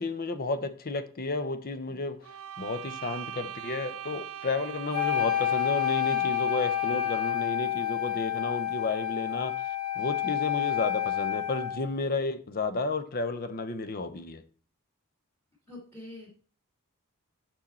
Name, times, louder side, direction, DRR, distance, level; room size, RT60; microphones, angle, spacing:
voice 1, 0.0-2.2 2.6-9.7 10.0-14.4, left 3 dB, 45° left, 0.7 m, -32 dB
sound 1, 2.2-7.5, right 10 dB, 65° right, 0.5 m, -41 dB
Wind instrument woodwind instrument, 4.9-11.9, left 11 dB, 90° left, 1.8 m, -29 dB
voice 2, 15.7-16.3, left 2 dB, 10° left, 1.9 m, -44 dB
6.4 x 6.3 x 4.2 m
head